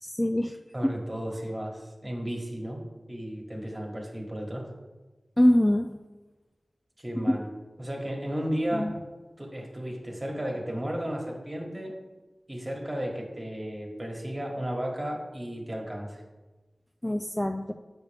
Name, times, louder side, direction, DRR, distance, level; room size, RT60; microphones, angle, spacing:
voice 1, 0.0-0.6 0.8-0.9 5.4-5.9 7.3-7.4 8.7-8.9 17.0-17.7, left 1 dB, 10° left, 5 dB, 0.3 m, -24 dB
voice 2, 0.7-4.7 7.0-7.5 7.8-8.9 9.4-12.0 12.5-16.2, equal, 20° right, 0 dB, 1.5 m, -34 dB
8.1 x 6.6 x 3.4 m, 1.2 s
wide cardioid pair, 80°, 0 cm